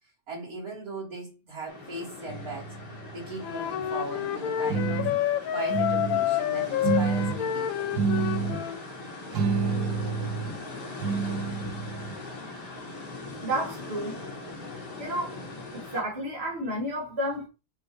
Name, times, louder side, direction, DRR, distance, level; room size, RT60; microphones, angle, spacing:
voice 1, 0.3-2.7 3.1-5.1 5.5-8.0, right 2 dB, 55° right, 4.2 m, -38 dB
sound 1, 1.7-16.0, left 2 dB, 85° left, 2.9 m, -40 dB
sound 2, 2.3-3.9 4.6-5.2 5.7-6.2 6.8-7.4 7.9-8.6 9.3-10.6 11.0-12.2, right 5 dB, 75° right, 1.9 m, -29 dB
Wind instrument woodwind instrument, 3.4-8.8, left 11 dB, 65° left, 1.0 m, -28 dB
voice 2, 13.4-14.2 15.0-15.4 15.7-17.5, right 1 dB, 35° right, 3.0 m, -31 dB
7.5 x 6.8 x 3.1 m
omnidirectional pair, 1.8 m